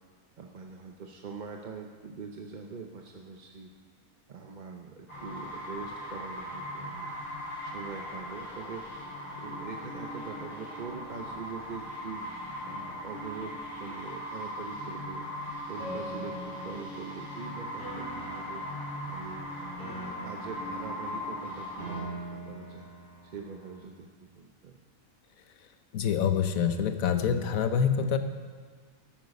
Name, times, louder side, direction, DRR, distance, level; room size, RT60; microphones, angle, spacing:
voice 1, 0.4-3.7 4.3-7.1 7.6-8.9 9.4-12.2 12.6-15.2 15.7-18.6 19.1-19.5 19.9-22.9 23.2-24.8, right 5 dB, 45° right, 2 dB, 0.7 m, -43 dB
sound 1, 5.1-22.0, left 1 dB, 35° left, 4.7 m, -39 dB
Piano, 15.8-23.8, right 2 dB, 5° left, 4.1 m, -43 dB
voice 2, 25.9-28.2, left 7 dB, 85° left, 9 dB, 1.2 m, -26 dB
13.0 x 9.0 x 5.3 m, 1.5 s
omnidirectional pair, 1.4 m